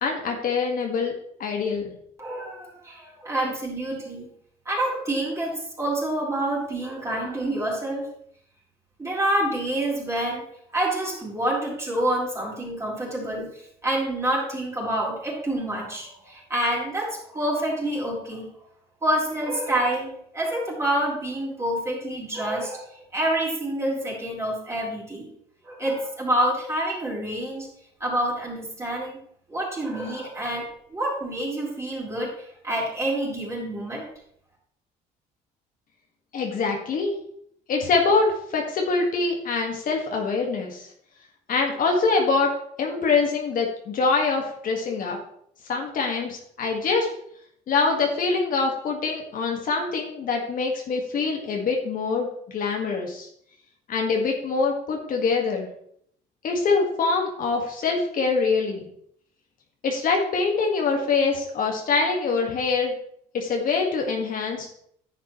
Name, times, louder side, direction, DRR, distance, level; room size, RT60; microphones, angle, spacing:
voice 1, 0.0-1.1 1.4-1.9 36.3-37.1 37.7-40.9 41.5-42.5 42.8-45.2 45.7-47.1 47.7-53.3 53.9-55.7 56.4-58.9 59.8-62.9 63.3-64.7, left 4 dB, 55° left, 1 dB, 1.8 m, -24 dB
voice 2, 2.2-4.3 4.7-8.1 9.0-10.4 10.7-13.5 13.8-18.5 19.0-25.3 25.6-27.7 28.0-29.2 29.5-32.3 32.6-34.0, right 1 dB, 15° right, -4 dB, 4.1 m, -27 dB
10.5 x 8.2 x 3.2 m, 0.68 s
cardioid pair, 110°, 17 cm